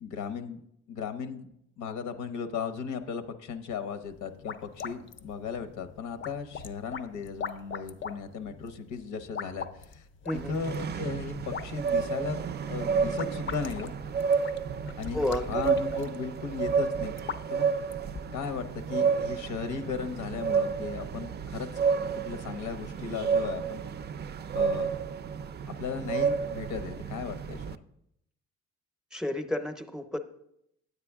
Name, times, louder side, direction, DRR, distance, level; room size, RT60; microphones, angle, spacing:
voice 1, 0.0-10.0 10.5-13.9 15.0-15.2 15.5-17.1 17.5-17.7 18.3-21.7 22.2-23.8 24.5-24.9 25.8-27.8, left 6 dB, 80° left, 10 dB, 0.9 m, -36 dB
sound 1, 4.0-18.6, left 6 dB, 40° left, 0.6 m, -42 dB
voice 2, 10.2-10.6 15.1-15.6 29.1-30.2, left 1 dB, ahead, 7 dB, 0.7 m, -31 dB
sound 2, 10.3-27.8, right 6 dB, 35° right, 0.4 m, -31 dB
9.5 x 8.3 x 3.5 m, 0.77 s
cardioid pair, 90°, 30 cm